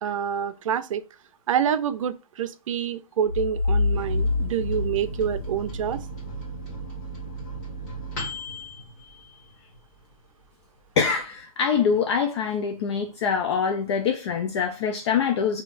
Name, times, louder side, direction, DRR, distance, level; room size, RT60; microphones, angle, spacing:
voice 1, 0.0-1.0 1.5-6.0, right 8 dB, 60° right, 0.5 m, -27 dB
sound 1, 3.3-5.9, left 3 dB, 80° left, 1.2 m, -26 dB
Microwave oven, 3.9-10.0 10.4-10.5 10.8-11.4, right 2 dB, 30° left, 1.6 m, -37 dB
voice 2, 11.0-15.6, left 6 dB, 50° left, 0.6 m, -24 dB
4.4 x 2.8 x 2.5 m
hypercardioid pair, 145°, 19 cm